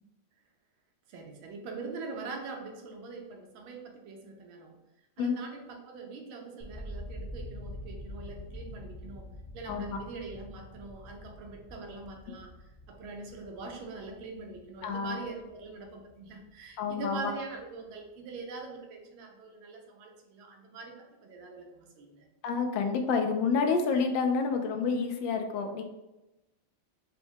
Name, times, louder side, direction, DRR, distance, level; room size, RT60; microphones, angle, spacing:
voice 1, 1.1-4.8 5.2-9.3 9.5-12.5 12.9-22.3, right 3 dB, 80° right, 2 dB, 1.5 m, -43 dB
sound 1, 6.6-16.6 16.9-17.6, left 1 dB, 20° right, 0.4 m, -46 dB
voice 2, 9.7-10.0 14.8-15.2 16.8-17.3 22.4-25.8, left 5 dB, 75° left, 5 dB, 1.2 m, -29 dB
4.6 x 2.2 x 4.3 m, 0.99 s
omnidirectional pair, 2.2 m